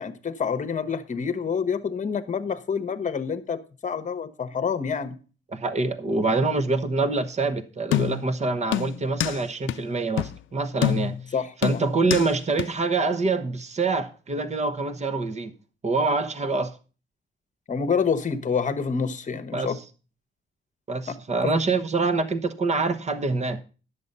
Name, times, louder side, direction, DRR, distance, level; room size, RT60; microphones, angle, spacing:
voice 1, 0.0-5.1 11.3-11.8 17.7-19.8 21.4-21.5, left 6 dB, 40° left, 1.1 m, -27 dB
voice 2, 5.5-11.1 11.6-15.5 15.8-16.8 19.5-19.7 20.9-23.6, right 3 dB, 35° right, 1.1 m, -25 dB
sound 1, 7.9-8.3 8.7-9.4 9.7-9.8 10.2-10.4 10.8-11.3 11.6-12.3 12.6-12.7, left 12 dB, 75° left, 0.4 m, -26 dB
10.5 x 6.9 x 5.4 m
cardioid pair, 100°, 20 cm